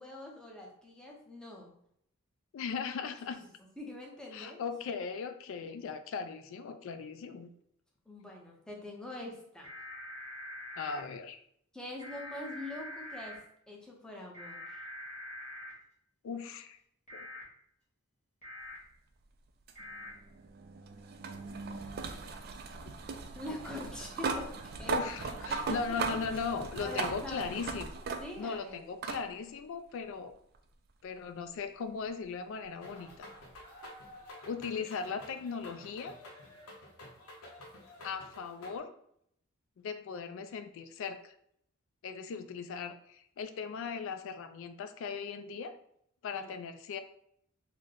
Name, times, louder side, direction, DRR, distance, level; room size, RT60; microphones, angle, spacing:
voice 1, 0.0-1.7 3.3-3.5 3.8-4.6 8.1-9.7 11.7-13.4 13.7-14.8 23.3-25.1 25.5-26.0 26.3-26.4 26.8-27.6 28.2-28.8 46.3-46.6, left 1 dB, 5° left, -2 dB, 0.6 m, -44 dB
voice 2, 2.5-3.4 4.3-7.5 10.8-11.4 16.2-16.8 17.1-17.3 24.9-27.9 28.4-30.3 31.0-33.3 34.5-36.2 38.0-38.9 39.8-41.3 42.0-45.7 46.2-47.0, left 5 dB, 65° left, 9 dB, 0.3 m, -38 dB
sound 1, 9.6-11.0 12.0-13.4 14.3-15.7 17.1-17.4 18.4-18.8 19.8-20.1, left 1 dB, 30° left, 1.4 m, -44 dB
sound 2, 19.7-28.6 29.0-29.2 30.5-30.6 33.5-33.6, right 4 dB, 45° right, 0.3 m, -38 dB
sound 3, 32.8-38.8, left 1 dB, 85° left, 0.8 m, -51 dB
3.3 x 2.1 x 3.6 m, 0.71 s
head